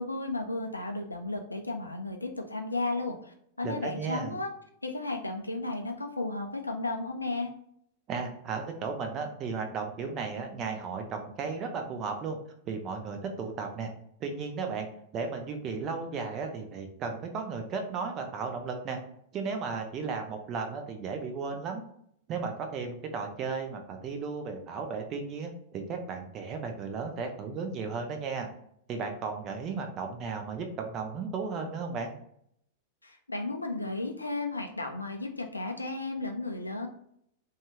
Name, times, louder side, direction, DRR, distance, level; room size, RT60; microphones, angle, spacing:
voice 1, 0.0-4.5 4.8-7.5 33.0-36.9, left 2 dB, 80° left, 4 dB, 0.4 m, -34 dB
voice 2, 3.6-4.4 8.1-12.4 12.7-13.9 14.2-14.9 15.1-19.0 19.3-21.8 22.3-28.5 28.9-32.1, right 5 dB, 30° right, 5 dB, 0.6 m, -35 dB
2.7 x 2.4 x 4.2 m, 0.71 s
figure-of-eight pair, 95°, 0 cm